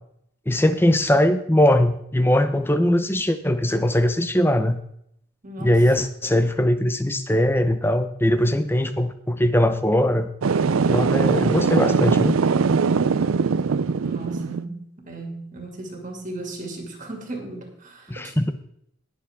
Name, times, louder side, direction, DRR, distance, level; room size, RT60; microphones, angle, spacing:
voice 1, 0.5-4.8 5.6-10.3 10.9-12.4 18.1-18.5, left 1 dB, 10° left, 10 dB, 0.7 m, -20 dB
voice 2, 5.4-5.8 14.0-18.3, right 2 dB, 40° right, 2 dB, 2.3 m, -36 dB
sound 1, 10.4-14.6, right 5 dB, 85° right, 0.5 m, -21 dB
19.5 x 6.9 x 3.6 m, 0.72 s
head